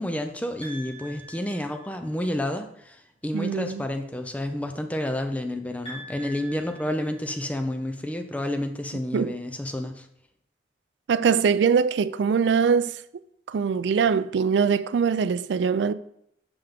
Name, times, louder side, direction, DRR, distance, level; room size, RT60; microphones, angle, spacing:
voice 1, 0.0-10.1, left 1 dB, 10° left, 0.5 m, -30 dB
sound 1, 0.6-2.3 5.9-7.9, equal, 30° left, 2.9 m, -44 dB
voice 2, 3.3-3.8 9.1-9.4 11.1-13.0 13.5-15.9, right 6 dB, 90° right, 0.4 m, -22 dB
7.0 x 5.6 x 3.6 m
head